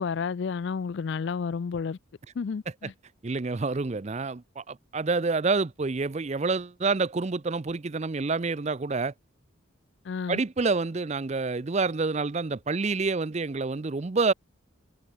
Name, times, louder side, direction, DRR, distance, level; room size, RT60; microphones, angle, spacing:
voice 1, 0.0-2.0 2.4-2.9 10.0-10.4, left 5 dB, 55° left, 0.4 m, -31 dB
voice 2, 3.2-9.1 10.3-14.3, right 4 dB, 30° right, 0.5 m, -28 dB
head